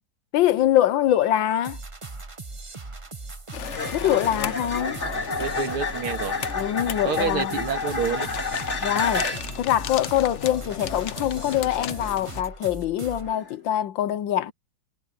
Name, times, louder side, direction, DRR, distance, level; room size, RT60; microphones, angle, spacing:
voice 1, 0.3-1.8 3.9-5.0 6.6-7.6 8.8-9.3 9.6-14.5, left 12 dB, 70° left, 1.5 m, -23 dB
sound 1, 1.1-1.3 3.6-9.6 13.3-13.5, left 3 dB, 35° left, 2.9 m, -30 dB
sound 2, 1.6-13.4, right 3 dB, 25° right, 0.8 m, -39 dB
sound 3, 3.5-12.4, left 9 dB, 90° left, 0.6 m, -36 dB
voice 2, 4.0-4.4 5.3-6.4 7.0-8.3, right 6 dB, 85° right, 3.2 m, -29 dB
omnidirectional pair, 2.3 m